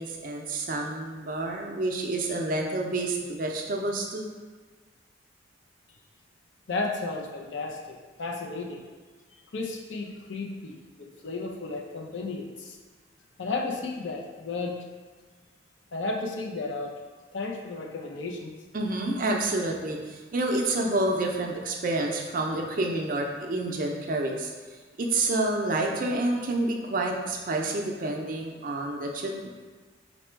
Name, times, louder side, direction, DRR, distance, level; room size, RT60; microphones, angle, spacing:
voice 1, 0.0-4.3 18.7-24.5 25.0-29.5, right 2 dB, 45° right, 1 dB, 0.5 m, -28 dB
voice 2, 6.7-8.8 9.5-12.8 13.4-14.8 15.9-17.0 17.3-18.6, left 3 dB, 75° left, 1 dB, 0.5 m, -33 dB
4.1 x 2.2 x 4.4 m, 1.4 s
head